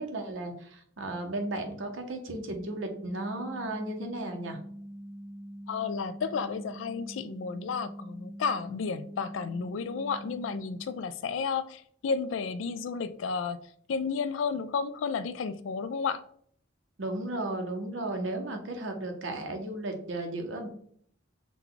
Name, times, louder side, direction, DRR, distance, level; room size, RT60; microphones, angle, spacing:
voice 1, 0.0-4.6 17.0-20.7, right 2 dB, 80° right, 0.8 m, -35 dB
sound 1, 2.5-10.8, equal, 30° left, 0.8 m, -44 dB
voice 2, 5.7-13.6 13.9-16.2, left 5 dB, 80° left, 0.4 m, -32 dB
6.0 x 2.3 x 3.8 m
head